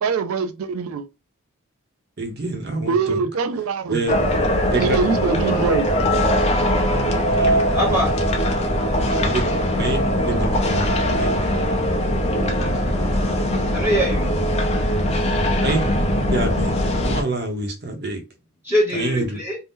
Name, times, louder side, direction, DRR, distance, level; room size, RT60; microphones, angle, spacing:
voice 1, 0.0-1.1 2.9-4.0 4.8-5.9, right 5 dB, 75° right, 0.4 m, -23 dB
voice 2, 2.2-3.2 3.9-4.1 4.7-5.0 6.9-8.0 9.1-9.4 9.8-10.0 10.3-11.3 12.6-12.8 15.6-15.9 16.3-18.2 18.9-19.4, right 2 dB, 50° right, 0.8 m, -27 dB
sound 1, 4.1-17.2, equal, 30° left, 0.5 m, -21 dB
voice 3, 7.7-8.2 9.1-9.2 13.7-14.5 18.6-19.6, equal, 10° right, 0.9 m, -24 dB
2.7 x 2.0 x 3.5 m
head